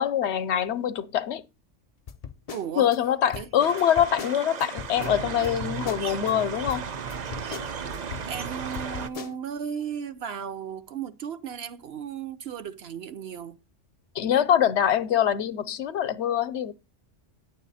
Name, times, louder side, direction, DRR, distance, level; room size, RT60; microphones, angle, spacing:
voice 1, 0.0-1.4 2.8-6.9 14.1-16.7, left 9 dB, 70° left, 0.9 m, -24 dB
sound 1, 2.1-3.0 3.3-5.1 5.4-6.3 6.7-8.4 8.7-9.4, left 7 dB, 45° left, 0.5 m, -40 dB
voice 2, 2.5-2.9 3.3-3.7 8.2-13.6, right 7 dB, 60° right, 1.0 m, -35 dB
sound 2, 3.6-9.1, right 6 dB, 45° right, 0.6 m, -35 dB
9.9 x 7.2 x 4.1 m
omnidirectional pair, 1.2 m